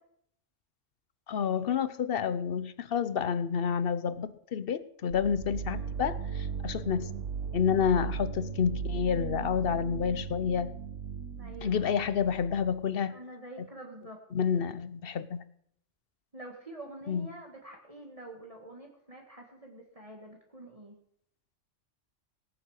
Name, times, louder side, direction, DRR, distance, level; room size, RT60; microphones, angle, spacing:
voice 1, 1.3-7.1 7.5-10.7 11.6-13.2 13.6-13.7 14.3-15.4 17.1-17.3, left 7 dB, 55° left, 15 dB, 0.9 m, -29 dB
sound 1, 5.1-12.8, right 7 dB, 80° right, 1.1 m, -37 dB
voice 2, 5.7-6.0 11.3-11.9 13.1-14.2 16.3-21.0, right 1 dB, 30° right, 1 dB, 1.9 m, -47 dB
18.0 x 9.4 x 6.5 m, 0.72 s
omnidirectional pair, 1.3 m